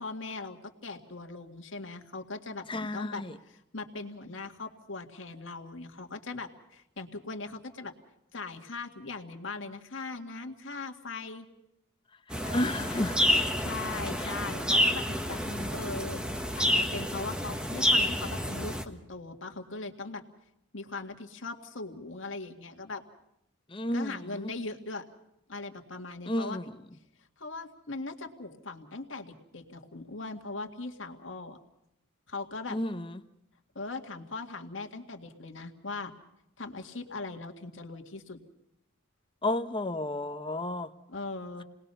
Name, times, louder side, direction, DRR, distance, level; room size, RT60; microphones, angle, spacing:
voice 1, 0.0-7.9 8.3-11.5 12.4-13.0 13.6-15.4 15.7-16.2 16.6-20.2 20.7-23.0 23.9-25.0 25.5-26.6 27.4-31.6 32.3-32.8 33.8-36.1 36.6-38.4 41.1-41.6, left 3 dB, 65° left, 4 dB, 2.0 m, -40 dB
voice 2, 2.7-3.3 12.5-13.2 14.2-14.3 14.8-14.9 15.5-15.7 23.7-24.5 26.3-26.6 32.7-33.2 39.4-40.9, left 1 dB, 25° left, 9 dB, 0.9 m, -32 dB
sound 1, 12.3-18.8, equal, 5° right, 1.2 m, -29 dB
29.0 x 20.0 x 5.6 m, 0.84 s
head